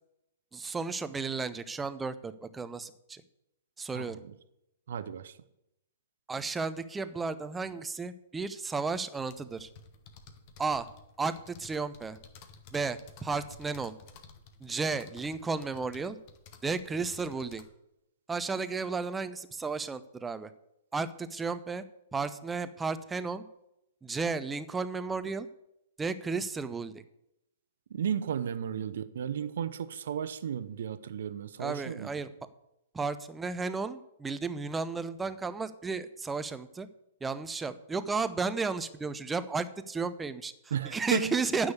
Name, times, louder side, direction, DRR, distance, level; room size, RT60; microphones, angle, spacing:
voice 1, 0.5-3.2 3.8-4.2 6.3-9.7 10.6-10.9 11.2-12.2 12.7-13.9 14.6-16.2 16.6-17.6 18.3-20.5 20.9-21.8 22.1-23.4 24.0-25.5 26.0-27.0 31.6-32.3 32.9-36.9 37.2-41.7, right 4 dB, 10° right, 0.7 m, -33 dB
voice 2, 4.9-5.3 27.9-32.1 40.7-41.4, right 8 dB, 55° right, 0.8 m, -34 dB
sound 1, 9.2-17.6, left 5 dB, 40° left, 1.3 m, -53 dB
9.5 x 6.3 x 8.3 m
figure-of-eight pair, 110°, 0 cm